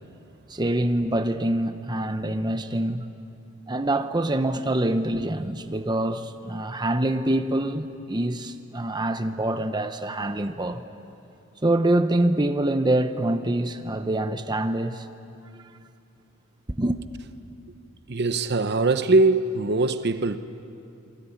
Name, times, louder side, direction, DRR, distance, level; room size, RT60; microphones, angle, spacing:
voice 1, 0.5-3.1 3.7-10.8 11.6-15.1 15.5-15.6 16.7-17.0, right 1 dB, 20° right, 0.8 m, -25 dB
voice 2, 18.1-20.4, right 2 dB, 50° right, 0.9 m, -21 dB
27.0 x 21.5 x 10.0 m
head